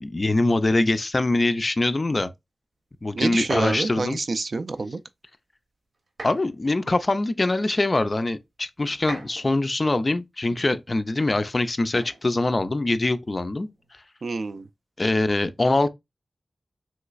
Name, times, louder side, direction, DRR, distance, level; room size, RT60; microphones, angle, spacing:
voice 1, 0.0-2.3 3.0-4.2 6.2-13.7 15.0-15.9, left 2 dB, 35° left, 0.3 m, -23 dB
voice 2, 3.1-5.0 14.2-14.7, right 3 dB, 60° right, 0.3 m, -27 dB
sound 1, 3.4-3.9 6.1-6.6 7.6-7.7 8.9-9.7 11.9-12.3 13.5-13.9, right 3 dB, 80° right, 0.9 m, -40 dB
3.2 x 3.0 x 2.3 m
wide cardioid pair, 95°, 0 cm